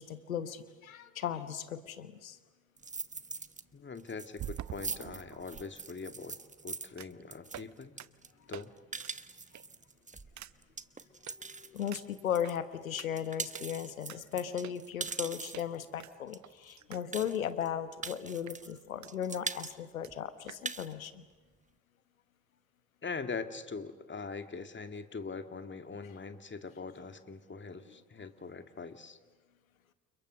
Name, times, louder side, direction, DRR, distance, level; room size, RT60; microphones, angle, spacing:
voice 1, 0.0-2.4 11.4-21.2, left 9 dB, 85° left, 13 dB, 1.3 m, -37 dB
sound 1, 1.9-2.0 4.3-5.7 7.0-7.2 7.5-7.7 8.0-8.1 8.5-8.6 9.0-9.1 9.5-9.8 10.4-10.5 11.3-11.4 11.9-12.5 13.0-13.1 13.5-13.6 14.1-14.2 14.6-15.2 15.5-15.7 16.0-17.0 17.3-17.4 18.0-18.2 18.5-19.1 19.4-19.5 19.7-19.8 20.0-20.1 20.5-20.6, right 11 dB, 45° right, 1.0 m, -46 dB
sound 2, 2.8-3.6 4.0-12.6 12.9-15.8 16.3-16.4 16.6-16.7 17.1-17.7 18.0-18.8 19.1-19.7 20.1-20.2 20.5-20.9, right 4 dB, 20° right, 1.3 m, -42 dB
voice 2, 3.7-6.4 6.6-8.0 8.5-8.7 23.0-29.2, left 4 dB, 30° left, 8 dB, 2.4 m, -42 dB
30.0 x 29.5 x 6.5 m, 1.2 s
hypercardioid pair, 50°, 40 cm